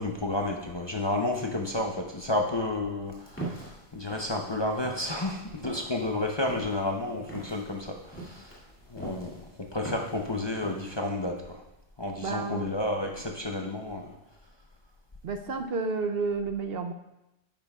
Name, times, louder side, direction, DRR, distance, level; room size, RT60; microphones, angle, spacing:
voice 1, 0.0-8.6 8.9-9.3 9.7-11.6 12.0-14.1, left 2 dB, 30° left, 1 dB, 0.6 m, -31 dB
sound 1, 3.1-11.0, right 2 dB, 10° left, 2.2 m, -43 dB
voice 2, 12.2-13.2 15.2-16.9, right 4 dB, 65° right, 6 dB, 0.8 m, -31 dB
10.5 x 8.7 x 2.3 m, 0.92 s
omnidirectional pair, 1.1 m